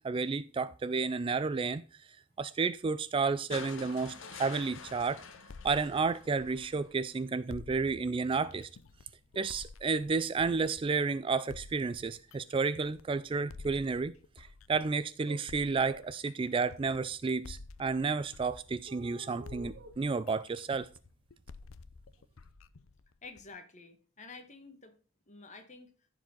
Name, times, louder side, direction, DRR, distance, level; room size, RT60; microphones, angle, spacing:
voice 1, 0.0-1.8 2.4-5.2 5.6-8.7 9.4-20.9, right 4 dB, 25° right, 0.3 m, -31 dB
sound 1, 3.5-6.8 8.1-8.2, left 4 dB, 70° left, 1.2 m, -47 dB
sound 2, 4.6-7.1 7.5-11.0 11.5-15.0 15.5-19.2 19.5-23.5, left 4 dB, 90° left, 0.6 m, -51 dB
sound 3, 15.3-15.5 15.8-16.1 18.9-19.9, right 4 dB, 55° right, 1.3 m, -49 dB
voice 2, 23.2-24.9 25.3-25.9, left 3 dB, 35° left, 1.5 m, -50 dB
14.5 x 4.9 x 3.8 m
head